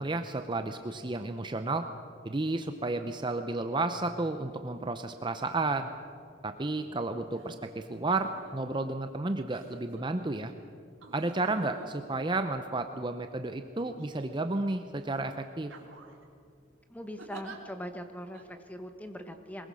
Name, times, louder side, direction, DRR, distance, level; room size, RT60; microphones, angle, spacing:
voice 1, 0.0-1.9 2.2-5.9 6.4-10.5 11.1-15.7, right 2 dB, 25° right, 7 dB, 0.7 m, -32 dB
sound 1, 7.3-7.5 8.0-8.7 9.5-10.0 11.0-13.1 13.8-14.6 15.0-15.2 15.6-16.2 17.2-17.6 18.3-18.5, right 3 dB, 75° right, 2.5 m, -50 dB
voice 2, 16.9-19.7, equal, 5° left, 7 dB, 1.2 m, -41 dB
22.0 x 20.5 x 6.3 m, 2.4 s
head